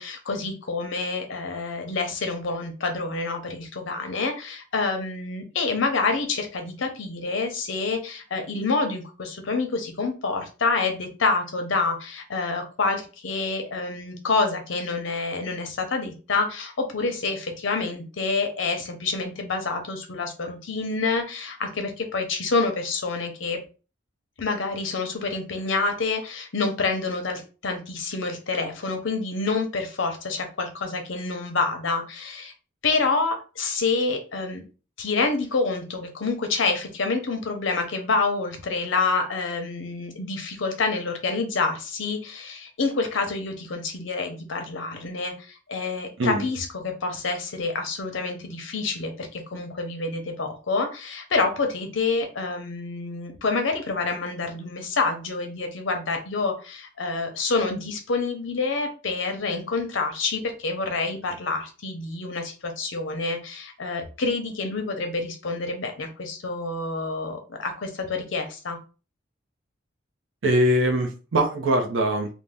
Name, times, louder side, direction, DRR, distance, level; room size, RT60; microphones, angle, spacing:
voice 1, 0.0-23.6 24.4-32.5 32.8-34.6 35.0-68.8, left 3 dB, 75° left, 5 dB, 0.7 m, -27 dB
voice 2, 70.4-72.3, right 1 dB, 80° right, 2 dB, 0.6 m, -22 dB
2.6 x 2.1 x 3.2 m, 0.34 s
head